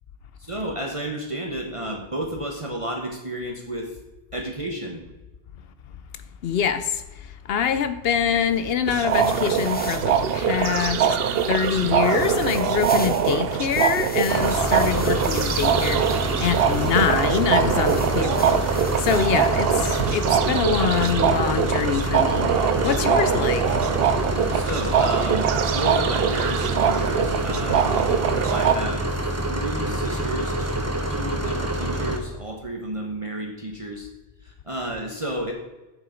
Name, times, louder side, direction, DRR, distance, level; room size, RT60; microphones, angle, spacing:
voice 1, 0.4-4.0 4.3-5.0 24.5-27.9 28.5-30.8 31.1-34.1 34.4-35.5, right 1 dB, 30° right, 0 dB, 1.2 m, -32 dB
voice 2, 6.4-11.2 11.5-23.8, left 8 dB, 75° left, 11 dB, 0.8 m, -25 dB
sound 1, 8.1-21.1, left 2 dB, 15° left, 0.4 m, -41 dB
sound 2, 8.9-28.7, right 7 dB, 70° right, 0.8 m, -23 dB
sound 3, 14.3-32.2, right 1 dB, 15° right, 0.9 m, -27 dB
8.6 x 7.1 x 5.1 m, 1.1 s
omnidirectional pair, 1.0 m